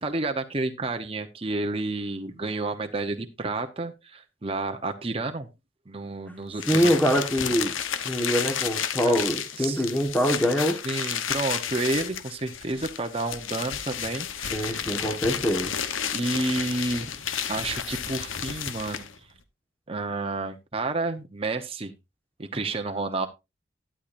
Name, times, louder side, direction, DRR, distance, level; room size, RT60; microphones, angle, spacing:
voice 1, 0.0-5.5 5.9-6.9 9.0-9.1 9.6-9.8 10.8-14.9 16.1-19.1 19.9-21.9 22.4-23.3, right 2 dB, 30° right, 5 dB, 0.8 m, -30 dB
sound 1, 6.6-19.2, left 8 dB, 85° left, 1.0 m, -32 dB
voice 2, 6.7-7.7 8.0-10.8 14.5-15.7, equal, 10° left, 3 dB, 1.4 m, -24 dB
12.0 x 9.9 x 2.6 m, 0.24 s
head